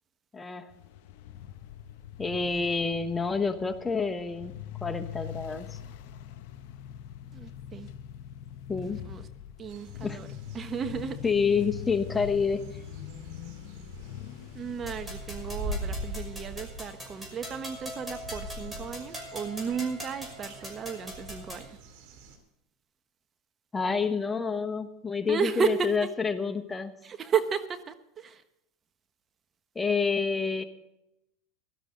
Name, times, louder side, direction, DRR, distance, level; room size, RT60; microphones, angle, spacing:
voice 1, 0.3-0.7 2.2-4.5 4.8-5.8 8.7-9.0 10.0-10.2 11.2-12.6 23.7-26.9 29.7-30.6, left 5 dB, 15° left, 1.1 m, -28 dB
sound 1, 0.7-16.1, left 10 dB, 70° left, 0.9 m, -43 dB
voice 2, 7.3-7.9 8.9-9.3 9.6-10.3 10.5-11.2 14.5-21.8 25.3-25.9 27.0-28.4, right 6 dB, 30° right, 1.2 m, -33 dB
sound 2, 9.7-22.4, right 1 dB, 65° right, 3.0 m, -43 dB
sound 3, 14.9-21.7, equal, 10° right, 5.8 m, -42 dB
17.0 x 12.5 x 3.9 m
hypercardioid pair, 95°, 0 cm